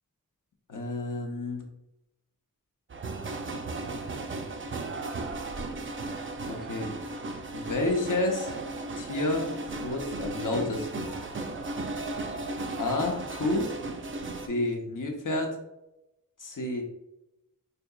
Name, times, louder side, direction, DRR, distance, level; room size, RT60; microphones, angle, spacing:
voice 1, 0.7-1.6 6.5-6.9 7.5-8.5 8.9-9.5 9.8-11.1 12.8-13.7 14.5-15.5 16.4-16.8, left 2 dB, 65° left, 1 dB, 0.7 m, -30 dB
sound 1, 2.9-14.5, right 2 dB, 40° right, 0.4 m, -35 dB
4.3 x 2.7 x 2.2 m, 0.90 s
wide cardioid pair, 75°, 34 cm